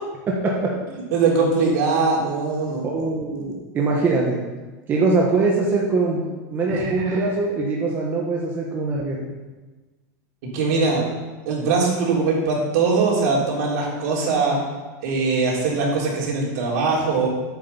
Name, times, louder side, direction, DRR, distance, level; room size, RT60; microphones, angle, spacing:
voice 1, 0.3-0.7 2.8-4.4 4.9-9.3, right 3 dB, 20° right, -2 dB, 1.3 m, -22 dB
voice 2, 0.9-2.8 3.2-3.5 6.7-7.3 9.1-9.3 10.5-11.0 11.5-14.6 15.0-17.3, right 4 dB, 65° right, -3 dB, 3.7 m, -22 dB
8.5 x 7.8 x 6.9 m, 1.2 s
supercardioid pair, 165°, 10 cm